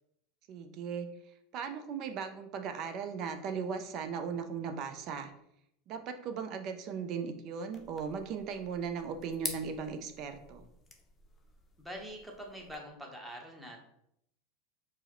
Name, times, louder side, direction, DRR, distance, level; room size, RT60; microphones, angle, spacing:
voice 1, 0.5-1.1 1.5-5.3 5.9-10.6, right 6 dB, 50° right, 7 dB, 0.4 m, -37 dB
sound 1, 7.7-12.7, left 4 dB, 25° left, 0.6 m, -47 dB
voice 2, 11.8-13.8, equal, 5° right, 0 dB, 0.9 m, -44 dB
4.6 x 2.1 x 3.0 m, 0.76 s
hypercardioid pair, 95°, 0 cm